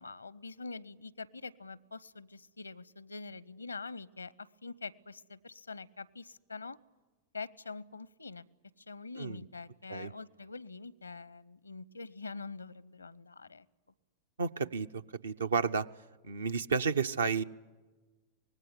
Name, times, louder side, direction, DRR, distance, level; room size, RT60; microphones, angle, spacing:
voice 1, 0.0-6.8 7.3-8.5 8.8-13.7, left 4 dB, 80° left, 24 dB, 0.7 m, -45 dB
voice 2, 14.4-15.9 16.2-17.4, right 5 dB, 70° right, 10 dB, 0.7 m, -31 dB
24.5 x 19.5 x 9.6 m, 1.2 s
figure-of-eight pair, 90°, 0 cm